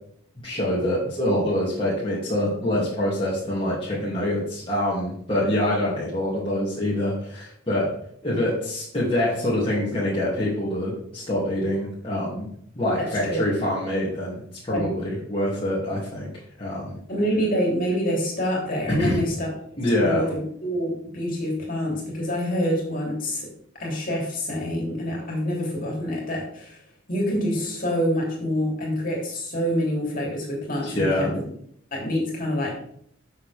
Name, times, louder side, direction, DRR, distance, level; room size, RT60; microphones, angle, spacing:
voice 1, 0.4-7.9 8.2-12.5 12.7-17.0 19.0-19.2 19.8-20.3 30.8-31.3, left 1 dB, 25° left, -7 dB, 2.8 m, -25 dB
voice 2, 17.1-23.5 23.8-26.8 27.1-31.4 31.9-32.9, equal, 40° left, -2 dB, 3.4 m, -26 dB
12.0 x 7.2 x 3.6 m, 0.65 s
head